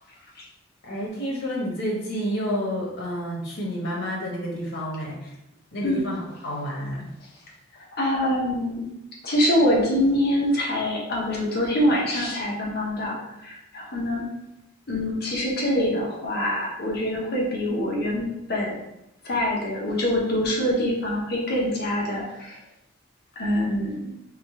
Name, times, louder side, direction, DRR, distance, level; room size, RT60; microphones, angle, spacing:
voice 1, 0.8-5.4 5.7-7.1, equal, 85° left, -3 dB, 1.0 m, -30 dB
voice 2, 8.0-8.9 9.2-13.2 13.4-14.3 14.9-18.7 19.2-22.6 23.4-24.0, left 1 dB, 55° left, -3 dB, 0.9 m, -24 dB
3.7 x 3.1 x 3.6 m, 0.86 s
head